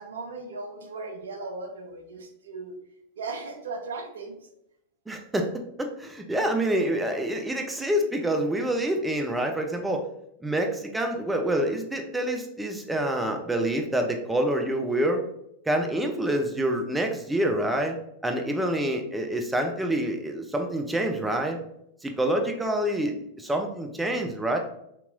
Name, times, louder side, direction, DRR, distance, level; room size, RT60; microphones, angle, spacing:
voice 1, 0.0-2.7 3.2-4.4, right 3 dB, 65° right, 5 dB, 0.5 m, -37 dB
voice 2, 5.1-5.5 5.8-10.0 10.4-15.2 15.7-18.0 18.2-21.6 22.0-24.6, right 1 dB, 10° right, 3 dB, 0.4 m, -27 dB
3.6 x 2.8 x 2.6 m, 0.79 s
figure-of-eight pair, 90°, 0 cm